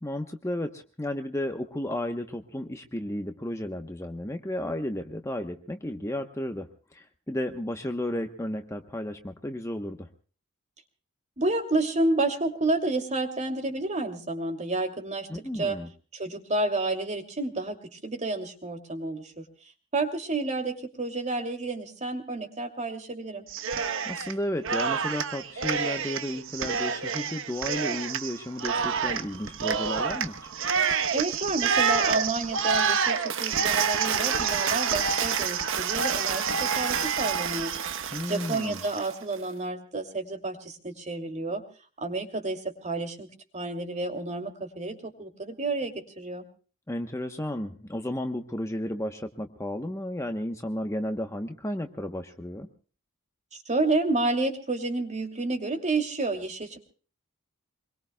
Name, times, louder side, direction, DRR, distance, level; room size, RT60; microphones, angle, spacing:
voice 1, 0.0-10.1 15.3-15.9 24.0-30.5 38.1-38.8 46.9-52.7, left 1 dB, 15° left, 6 dB, 1.0 m, -33 dB
voice 2, 11.4-15.8 16.1-19.4 19.9-23.4 31.1-41.6 42.0-43.3 43.5-46.4 53.7-56.8, right 2 dB, 35° right, 5 dB, 2.7 m, -30 dB
Cheering, 23.5-24.3 24.6-39.1, right 6 dB, 65° right, 1.0 m, -28 dB
26.0 x 22.0 x 2.3 m, 0.39 s
head